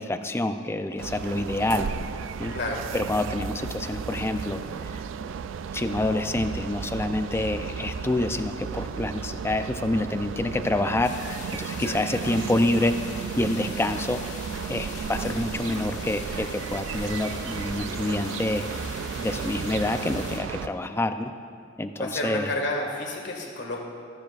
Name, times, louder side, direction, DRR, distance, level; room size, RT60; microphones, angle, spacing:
voice 1, 0.0-1.9 2.4-2.5 2.9-4.6 5.7-11.1 11.5-14.2 14.7-18.6 19.2-21.3 21.8-22.5, left 1 dB, 15° left, 8 dB, 0.4 m, -27 dB
sound 1, 1.0-20.7, right 6 dB, 70° right, 0.3 m, -34 dB
voice 2, 2.5-2.8 7.3-7.6 11.7-12.0 15.3-15.5 22.0-23.8, left 1 dB, 65° left, 0 dB, 1.8 m, -31 dB
sound 2, 11.0-20.4, left 3 dB, 40° left, 1.4 m, -42 dB
14.5 x 12.0 x 2.4 m, 2.3 s
head